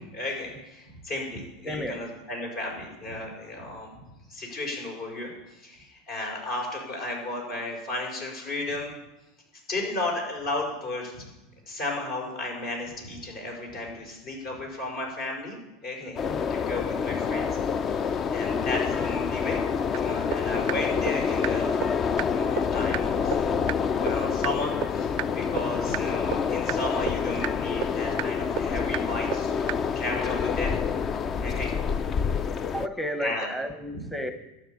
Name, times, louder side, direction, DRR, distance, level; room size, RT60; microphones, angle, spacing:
voice 1, 0.0-3.9 4.3-8.9 9.7-11.3 11.7-15.6 15.8-16.2 16.5-17.5 17.8-19.6 20.0-21.8 22.2-23.6 23.9-30.7 31.4-31.7 32.4-32.5 33.2-33.5, left 2 dB, 60° left, 0 dB, 5.7 m, -34 dB
voice 2, 1.6-2.0 16.0-16.4 32.6-34.3, equal, ahead, 9 dB, 0.9 m, -33 dB
sound 1, 16.2-32.9, left 6 dB, 35° left, 0.5 m, -27 dB
sound 2, 19.9-20.0 20.3-20.4 20.7-20.8 21.1-21.2 21.4-21.5 21.8-21.9 22.2-22.3 22.6-22.7 22.9-23.0 23.3-23.4 23.7-23.8 24.1-24.2 24.4-24.5 24.8-24.9 25.2-25.3 25.6-25.7 25.9-26.0 26.3-26.4 26.7-26.8 27.1-27.2 27.4-27.5 27.8-27.9 28.2-28.3 28.6-28.7 28.9-29.0 29.3-29.4 29.7-29.8, right 24 dB, 60° right, 0.4 m, -28 dB
12.5 x 6.2 x 9.5 m, 0.99 s
hypercardioid pair, 95°, 0 cm